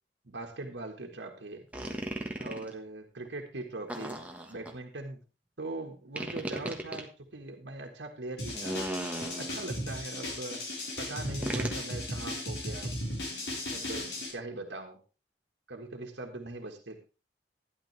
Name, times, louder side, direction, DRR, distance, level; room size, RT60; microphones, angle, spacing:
voice 1, 0.2-1.7 2.4-5.2 5.6-8.8 9.2-10.6 11.0-12.9 13.7-15.0 15.7-17.0, right 2 dB, 90° right, 3 dB, 1.6 m, -41 dB
sound 1, 1.7-2.7 3.9-4.7 6.2-7.0 8.5-9.7 11.4-11.8, right 1 dB, 10° right, 1.4 m, -36 dB
sound 2, 8.4-14.3, left 1 dB, 70° left, 4.3 m, -36 dB
12.5 x 10.5 x 3.3 m, 0.32 s
head